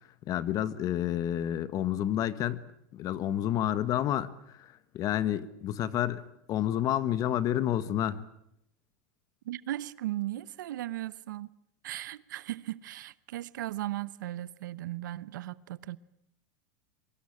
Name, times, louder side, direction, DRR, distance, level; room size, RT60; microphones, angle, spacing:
voice 1, 0.3-2.6 2.9-4.3 4.6-8.3, left 11 dB, 35° left, 1.4 m, -29 dB
voice 2, 9.4-11.5 11.8-16.0, right 15 dB, 85° right, 1.0 m, -37 dB
23.5 x 23.5 x 8.8 m
supercardioid pair, 140°, 10 cm